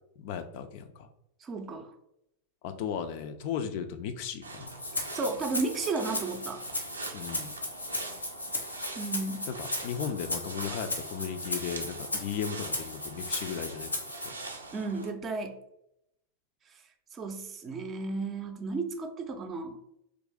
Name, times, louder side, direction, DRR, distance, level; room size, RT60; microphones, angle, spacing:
voice 1, 0.2-1.1 2.6-4.7 7.1-7.5 9.5-13.9 14.2-14.4, left 8 dB, 45° left, 8 dB, 0.3 m, -36 dB
voice 2, 1.4-1.9 5.1-6.6 9.0-9.5 14.7-15.6 17.1-19.8, right 3 dB, 25° right, 5 dB, 0.5 m, -33 dB
sound 1, 4.4-15.1, right 3 dB, 80° right, 0.5 m, -43 dB
Rattle (instrument), 4.7-14.3, left 1 dB, 80° left, 0.6 m, -36 dB
3.2 x 2.5 x 3.5 m, 0.79 s
figure-of-eight pair, 90°, 0 cm